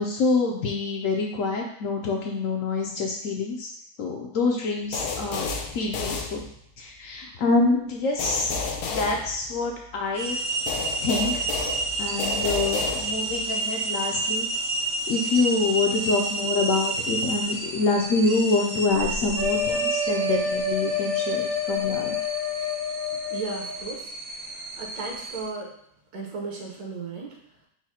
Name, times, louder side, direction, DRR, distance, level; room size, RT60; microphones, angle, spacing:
voice 1, 0.0-3.7 4.0-5.5 5.7-6.5 6.8-8.5 8.9-10.4 11.0-11.4 12.0-14.5 15.1-22.2, left 3 dB, 65° left, 1 dB, 0.9 m, -26 dB
sound 1, 4.9-6.9 8.2-9.9 10.7-13.4, left 4 dB, 85° left, 1.1 m, -32 dB
sound 2, 10.1-25.5, right 2 dB, 55° right, 0.9 m, -30 dB
sound 3, 19.4-23.8, left 3 dB, 25° left, 0.5 m, -28 dB
voice 2, 23.3-24.1 24.8-25.7 26.1-27.3, right 4 dB, 70° right, -1 dB, 1.4 m, -35 dB
4.7 x 2.1 x 4.2 m, 0.71 s
omnidirectional pair, 1.7 m